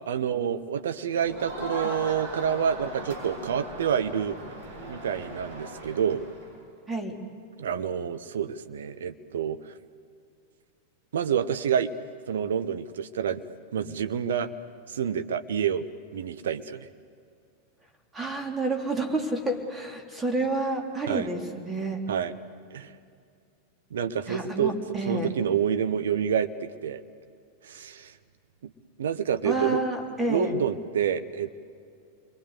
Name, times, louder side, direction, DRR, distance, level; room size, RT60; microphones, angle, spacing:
voice 1, 0.1-4.4 4.9-6.2 7.6-9.7 11.1-11.9 12.3-13.4 13.7-14.5 14.9-15.9 16.1-16.9 21.1-21.3 22.1-22.3 22.7-22.9 23.9-24.8 25.1-27.0 27.6-28.1 28.6-28.7 29.0-29.8 30.2-31.5, right 8 dB, 65° right, 10 dB, 1.1 m, -28 dB
Crowd, 1.2-6.5, right 1 dB, 45° right, 7.6 m, -39 dB
voice 2, 6.9-7.3 18.1-22.1 24.3-25.3 29.4-30.5, right 2 dB, 10° right, 2 dB, 3.3 m, -29 dB
29.0 x 23.0 x 8.2 m, 2.3 s
figure-of-eight pair, 90°, 0 cm